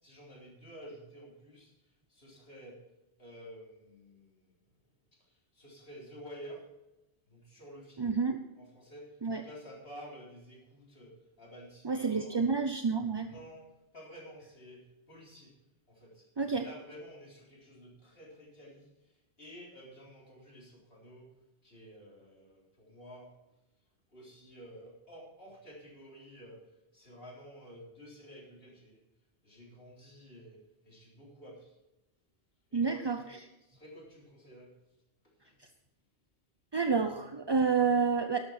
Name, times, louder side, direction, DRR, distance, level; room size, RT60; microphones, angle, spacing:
voice 1, 0.0-1.7 2.1-2.8 3.2-4.5 5.3-6.7 7.3-8.2 8.5-12.5 13.2-15.5 15.9-18.9 19.4-21.3 21.6-23.3 24.1-26.6 26.9-29.0 29.4-31.8 32.7-33.3 33.6-34.7 35.4-35.5, equal, 55° left, -3 dB, 4.1 m, -51 dB
voice 2, 8.0-8.4 9.2-9.4 11.8-13.3 16.4-16.6 32.7-33.2 36.7-38.4, right 5 dB, 30° right, 7 dB, 0.5 m, -29 dB
12.0 x 12.0 x 4.3 m, 0.97 s
omnidirectional pair, 1.2 m